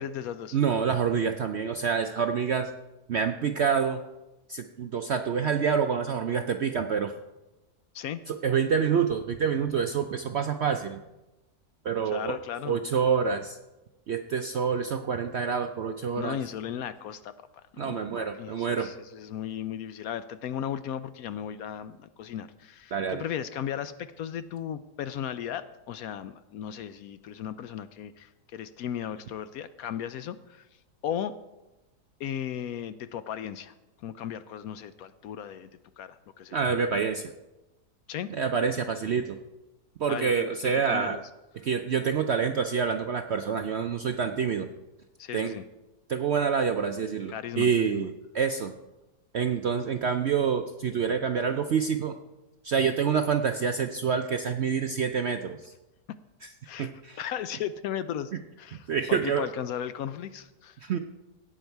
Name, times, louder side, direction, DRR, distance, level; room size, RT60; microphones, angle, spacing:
voice 1, 0.0-0.6 7.9-8.2 12.1-12.8 16.2-17.3 17.7-30.6 31.0-31.3 32.2-33.7 34.0-35.7 36.0-36.6 38.1-38.3 40.1-40.5 40.8-41.2 45.2-45.6 47.3-48.1 56.7-56.9 57.2-58.3 58.6-60.8, left 9 dB, 70° left, 13 dB, 0.9 m, -36 dB
voice 2, 0.5-2.7 3.1-4.0 4.5-7.1 8.3-11.0 11.8-12.4 12.7-13.6 14.1-16.4 17.8-18.9 22.9-23.2 36.5-37.3 38.3-39.4 40.0-41.2 41.6-44.7 45.3-45.6 46.1-48.7 49.3-52.2 52.6-55.7 56.4-56.5 56.8-57.2 58.9-59.5 60.8-61.0, right 6 dB, 65° right, 6 dB, 0.6 m, -27 dB
16.5 x 8.8 x 4.5 m, 1.0 s
omnidirectional pair, 1.7 m